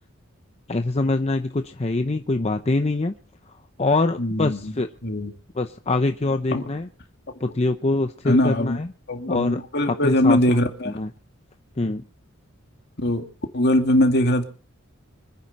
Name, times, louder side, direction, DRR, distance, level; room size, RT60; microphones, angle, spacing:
voice 1, 0.7-3.1 3.8-4.9 5.5-6.9 7.4-8.9 9.3-9.6 9.9-10.4 10.9-11.1 11.8-12.0, left 2 dB, 30° left, 7 dB, 0.7 m, -24 dB
voice 2, 4.2-4.7 5.0-5.3 6.5-6.6 8.3-8.8 9.1-10.9 13.0-13.2 13.5-14.4, left 1 dB, 55° left, 5 dB, 2.3 m, -21 dB
25.5 x 9.9 x 4.2 m, 0.40 s
head